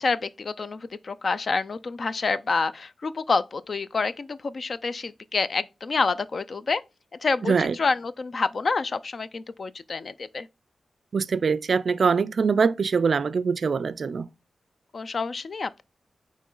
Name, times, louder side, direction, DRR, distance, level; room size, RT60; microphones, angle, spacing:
voice 1, 0.0-6.8 7.2-10.5 14.9-15.8, left 4 dB, 50° left, 0.4 m, -28 dB
voice 2, 7.4-7.7 11.1-14.3, right 5 dB, 55° right, 0.3 m, -23 dB
8.4 x 3.1 x 3.8 m
wide cardioid pair, 130°, 0 cm